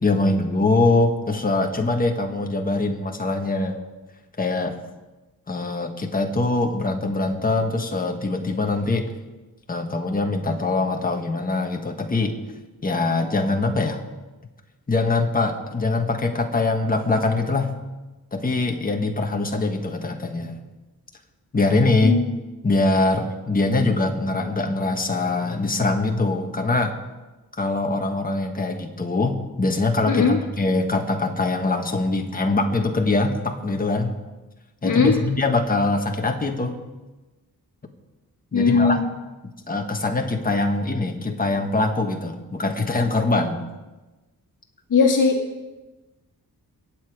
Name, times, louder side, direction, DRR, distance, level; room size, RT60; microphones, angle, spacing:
voice 1, 0.0-3.8 4.4-4.8 5.5-9.1 9.7-12.3 12.8-14.0 14.9-17.7 18.3-20.6 21.5-22.2 22.6-26.9 27.6-34.2 34.8-36.8 38.5-39.0 39.7-43.6, left 2 dB, 25° left, 3 dB, 1.5 m, -23 dB
voice 2, 30.1-30.4 34.8-35.1 38.5-39.1 44.9-45.4, left 5 dB, 55° left, 1 dB, 1.9 m, -19 dB
23.0 x 9.0 x 4.9 m, 1.1 s
wide cardioid pair, 155°, 37 cm